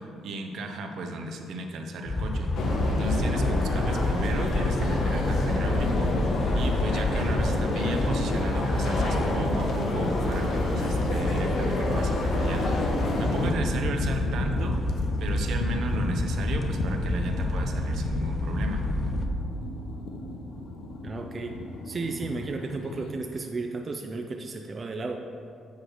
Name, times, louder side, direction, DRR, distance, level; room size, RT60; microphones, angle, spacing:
voice 1, 0.0-2.5 2.9-6.1 6.5-14.7 15.2-18.8, right 1 dB, 75° right, 4 dB, 0.7 m, -34 dB
sound 1, 2.1-19.3, left 1 dB, 20° left, 0.6 m, -28 dB
sound 2, 2.5-13.5, left 2 dB, 65° left, 0.9 m, -29 dB
sound 3, 7.2-23.1, left 2 dB, 85° left, 0.7 m, -37 dB
voice 2, 21.0-21.6 21.8-25.2, right 3 dB, 40° right, 3 dB, 0.4 m, -33 dB
8.4 x 3.2 x 6.3 m, 2.5 s
cardioid pair, 90°, 0 cm